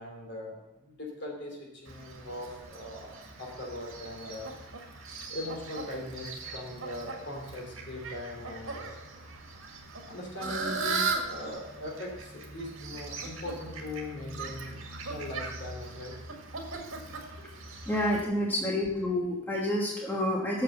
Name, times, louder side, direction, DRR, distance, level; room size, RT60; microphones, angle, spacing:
voice 1, 0.0-4.5 5.3-9.0 10.1-14.8 15.1-16.2 17.4-17.6, left 1 dB, 55° left, 0 dB, 2.9 m, -40 dB
Fowl, 1.9-18.2, right 3 dB, 85° right, 1.8 m, -39 dB
voice 2, 17.9-20.6, left 1 dB, 10° left, -3 dB, 1.3 m, -29 dB
8.6 x 6.5 x 6.9 m, 1.0 s
head